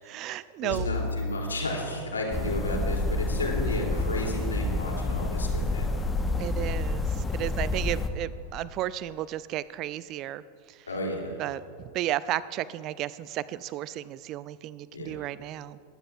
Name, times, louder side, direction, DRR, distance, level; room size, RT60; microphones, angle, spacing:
voice 1, 0.0-0.9 6.4-10.4 10.7-10.9 11.4-11.6 11.9-15.8, right 13 dB, 35° right, 18 dB, 0.4 m, -33 dB
voice 2, 0.6-6.0 10.9-11.4 14.9-15.2, left 1 dB, 75° left, 0 dB, 2.8 m, -32 dB
sound 1, 0.7-2.7, left 2 dB, 45° left, 2.1 m, -35 dB
sound 2, 2.3-8.1, left 2 dB, 15° left, 1.0 m, -28 dB
21.5 x 16.5 x 2.4 m, 2.6 s
figure-of-eight pair, 90°, 0 cm